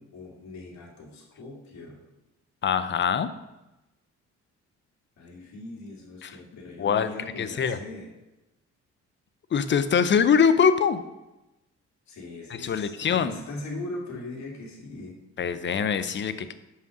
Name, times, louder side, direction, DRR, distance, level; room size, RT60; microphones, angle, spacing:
voice 1, 0.0-2.0 5.2-8.1 12.1-15.2, left 2 dB, 65° left, -3 dB, 2.0 m, -40 dB
voice 2, 2.6-3.3 6.2-6.4 6.8-7.1 7.4-7.8 9.5-11.0 12.6-13.3 15.4-16.5, left 7 dB, 40° left, 12 dB, 0.6 m, -23 dB
5.5 x 4.9 x 6.1 m, 0.98 s
cardioid pair, 90°, 30 cm